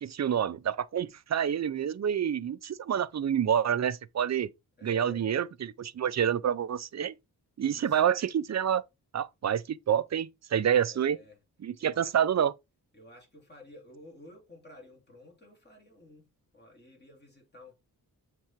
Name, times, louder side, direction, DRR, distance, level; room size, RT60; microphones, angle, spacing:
voice 1, 0.0-4.5 4.8-7.2 7.6-8.8 9.1-11.2 11.6-12.5, right 9 dB, 45° right, 0.5 m, -28 dB
voice 2, 4.8-5.3 7.6-8.0 10.7-11.4 11.8-12.2 12.9-17.7, left 2 dB, 25° left, 3.3 m, -52 dB
7.2 x 3.8 x 4.4 m
wide cardioid pair, 125°, 38 cm